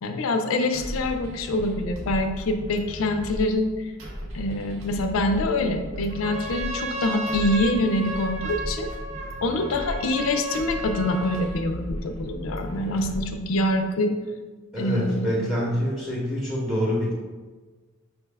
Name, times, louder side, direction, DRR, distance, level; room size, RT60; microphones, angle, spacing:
voice 1, 0.0-3.9 4.3-8.9 9.4-14.1 14.8-15.4, left 1 dB, 80° left, 6 dB, 0.4 m, -25 dB
sound 1, 0.7-13.8, equal, 70° right, 0.7 m, -36 dB
Trumpet, 6.1-11.6, right 2 dB, 35° right, 0.3 m, -34 dB
voice 2, 14.7-17.1, equal, 5° right, -7 dB, 0.8 m, -26 dB
5.6 x 2.2 x 3.3 m, 1.3 s
head